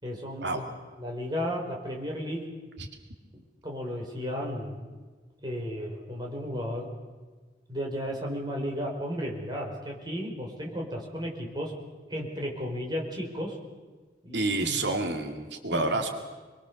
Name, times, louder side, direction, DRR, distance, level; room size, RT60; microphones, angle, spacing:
voice 1, 0.0-2.4 3.3-4.9 5.4-6.9 7.7-11.7 12.1-13.6 14.2-14.8 15.7-15.9, equal, 25° right, -1 dB, 5.3 m, -34 dB
voice 2, 14.3-16.1, right 2 dB, 85° right, 4 dB, 2.5 m, -29 dB
28.0 x 22.5 x 7.1 m, 1.4 s
head